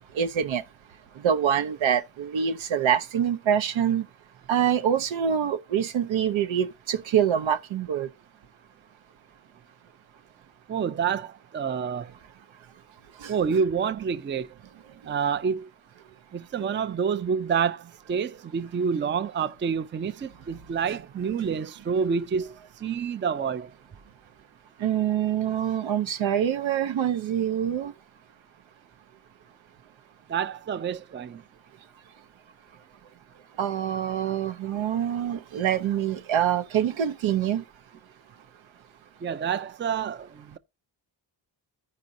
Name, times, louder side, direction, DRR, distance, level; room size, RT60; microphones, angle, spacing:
voice 1, 0.1-0.6 1.2-4.1 4.5-8.1 13.2-13.3 24.8-27.9 33.6-37.6, right 9 dB, 85° right, 0.8 m, -25 dB
voice 2, 10.7-12.1 13.3-14.5 15.1-15.7 16.3-22.5 22.8-23.7 30.3-31.4 39.2-40.6, right 6 dB, 25° right, 0.4 m, -28 dB
14.5 x 5.2 x 2.6 m
wide cardioid pair, 115°, 45 cm